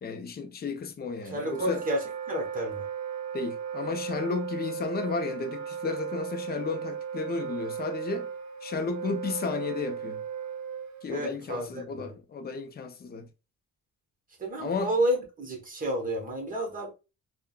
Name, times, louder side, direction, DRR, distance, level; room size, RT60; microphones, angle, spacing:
voice 1, 0.0-1.8 3.3-8.3 8.6-10.2 11.0-13.3 14.6-14.9, left 4 dB, 30° left, 0.5 m, -33 dB
Wind instrument woodwind instrument, 1.2-11.1, right 8 dB, 65° right, 0.6 m, -36 dB
voice 2, 1.3-2.8 11.1-12.1 14.4-16.9, right 1 dB, 25° right, 1.1 m, -31 dB
3.4 x 2.1 x 2.3 m
cardioid pair, 90°, 30 cm